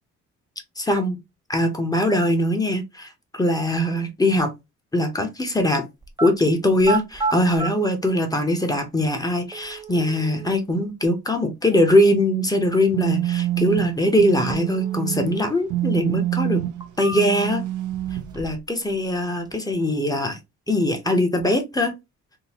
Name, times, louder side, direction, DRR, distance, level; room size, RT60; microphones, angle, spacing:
voice 1, 0.8-1.2 1.5-4.5 4.9-5.8 6.2-16.6 17.0-17.6 18.4-20.4 20.7-21.9, left 1 dB, 10° left, 0.9 m, -21 dB
sound 1, 6.0-6.3 6.8-7.7 8.7-8.8 9.5-10.5 14.5-15.5 15.9-16.0 16.6-17.5 17.9-18.7 18.9-19.5, right 4 dB, 15° right, 0.5 m, -31 dB
sound 2, 12.7-18.4, right 14 dB, 75° right, 0.5 m, -26 dB
3.7 x 2.2 x 2.9 m
cardioid pair, 90°, 30 cm